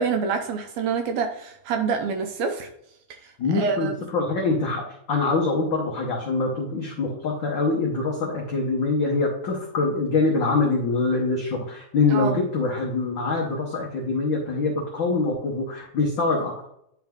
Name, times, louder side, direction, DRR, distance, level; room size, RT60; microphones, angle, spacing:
voice 1, 0.0-2.7 3.2-4.0 12.1-12.4, right 5 dB, 75° right, 5 dB, 1.8 m, -27 dB
voice 2, 3.4-16.7, left 3 dB, 85° left, -2 dB, 1.0 m, -24 dB
10.5 x 3.5 x 3.5 m, 0.74 s
omnidirectional pair, 3.6 m